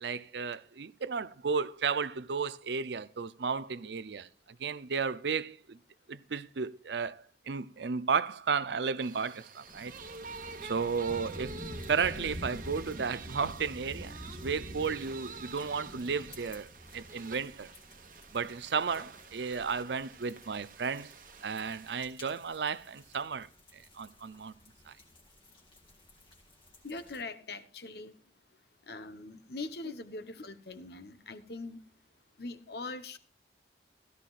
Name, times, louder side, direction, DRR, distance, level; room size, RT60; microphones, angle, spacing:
voice 1, 0.0-4.3 4.6-5.8 6.1-9.9 10.6-11.6 11.9-17.7 18.3-21.1 21.4-23.5 23.7-24.5 24.9-25.0, right 5 dB, 75° right, 0.6 m, -33 dB
sound 1, 9.0-23.2, right 4 dB, 50° right, 1.1 m, -48 dB
sound 2, 9.7-27.2, equal, 30° left, 1.9 m, -48 dB
voice 2, 26.8-28.1 28.9-31.8 32.4-33.2, left 3 dB, 65° left, 1.1 m, -42 dB
16.5 x 13.5 x 2.5 m
head